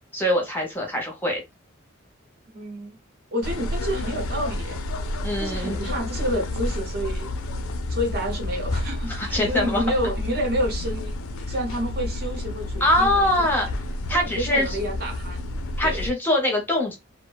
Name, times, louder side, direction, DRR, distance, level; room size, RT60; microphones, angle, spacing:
voice 1, 0.1-1.4 5.2-5.9 9.1-9.8 12.8-13.7 14.1-14.8 15.8-16.9, left 1 dB, 10° left, 0.6 m, -23 dB
voice 2, 2.5-3.0 3.3-4.8 5.4-7.3 7.9-11.2 11.5-13.5 14.1-15.4 15.8-16.0, equal, 50° right, 0.8 m, -29 dB
sound 1, 3.4-16.1, left 1 dB, 90° left, 0.4 m, -30 dB
2.5 x 2.1 x 2.3 m
head